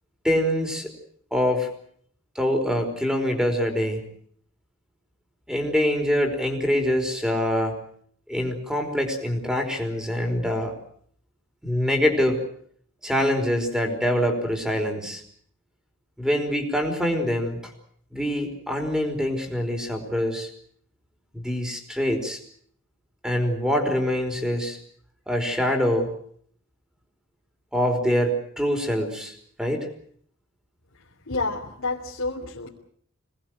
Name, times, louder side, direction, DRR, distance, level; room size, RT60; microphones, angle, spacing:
voice 1, 0.2-0.9 1.3-1.7 2.3-4.1 5.5-7.8 8.3-10.7 11.6-12.4 13.0-15.2 16.2-17.6 18.1-20.5 21.3-22.4 23.2-24.8 25.3-26.1 27.7-29.9, equal, 5° right, 5 dB, 4.9 m, -24 dB
voice 2, 31.3-32.7, left 3 dB, 85° left, -2 dB, 3.1 m, -29 dB
26.5 x 19.5 x 7.8 m, 0.62 s
head